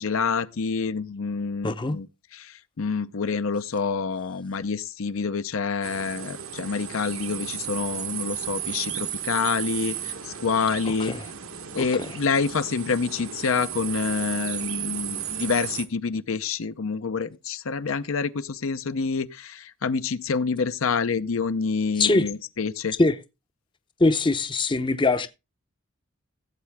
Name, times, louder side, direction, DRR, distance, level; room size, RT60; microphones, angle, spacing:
voice 1, 0.0-2.1 2.3-11.1 11.7-23.0, left 5 dB, 70° left, 0.6 m, -27 dB
voice 2, 1.6-2.0 11.0-11.2 22.0-22.3 23.0-23.1 24.0-25.3, left 3 dB, 20° left, 0.6 m, -22 dB
sound 1, 5.8-15.9, right 10 dB, 75° right, 1.2 m, -34 dB
16.0 x 7.5 x 3.5 m
head